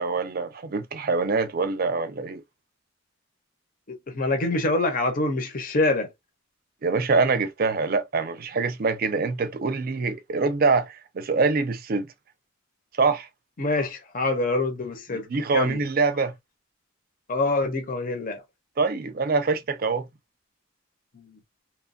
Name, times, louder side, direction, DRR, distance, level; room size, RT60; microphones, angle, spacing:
voice 1, 0.0-2.4 6.8-12.1 13.0-13.3 15.3-16.3 18.8-20.1, right 4 dB, 45° right, 0.5 m, -24 dB
voice 2, 3.9-6.1 13.6-15.3 15.5-15.8 17.3-18.4 21.1-21.4, left 2 dB, 45° left, 0.7 m, -25 dB
3.0 x 2.2 x 2.5 m
head